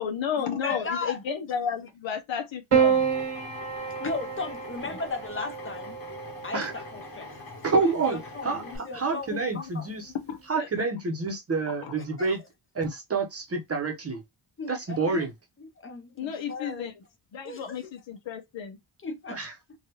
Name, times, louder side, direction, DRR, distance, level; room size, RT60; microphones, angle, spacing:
voice 1, 0.0-3.1 8.7-8.8 9.1-9.7 10.1-10.9 11.7-12.0 16.2-17.0 17.3-18.8, left 8 dB, 65° left, 0.8 m, -33 dB
voice 2, 0.6-1.2 4.0-6.0 6.4-7.3 7.7-9.9 12.0-12.3 14.6-15.3 15.6-16.9 17.4-17.6 19.0-19.4, left 3 dB, 25° left, 0.7 m, -36 dB
Piano, 2.7-7.2 8.4-9.1, right 7 dB, 85° right, 1.3 m, -29 dB
Drill, 2.8-8.8, left 3 dB, 45° left, 1.5 m, -43 dB
voice 3, 7.6-8.2 8.4-8.6 8.9-10.1 10.5-12.4 12.8-14.2 14.7-15.3 19.3-19.5, right 4 dB, 30° right, 0.8 m, -28 dB
3.3 x 2.4 x 2.8 m
wide cardioid pair, 150°, 48 cm